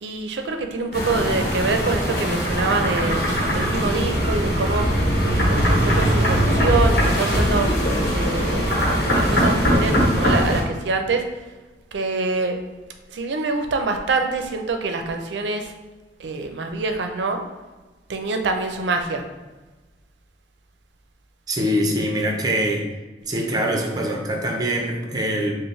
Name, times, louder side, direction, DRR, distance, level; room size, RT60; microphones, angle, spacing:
voice 1, 0.0-3.2 3.5-4.9 5.2-7.7 8.1-8.7 9.1-11.3 11.9-12.6 13.1-15.7 16.2-17.4 18.1-19.2, right 3 dB, 80° right, 5 dB, 0.5 m, -25 dB
sound 1, 0.9-10.6, equal, 60° left, 1.1 m, -20 dB
voice 2, 21.5-22.9 23.3-25.5, equal, 20° right, 1 dB, 0.5 m, -23 dB
5.1 x 2.1 x 3.1 m, 1.2 s
head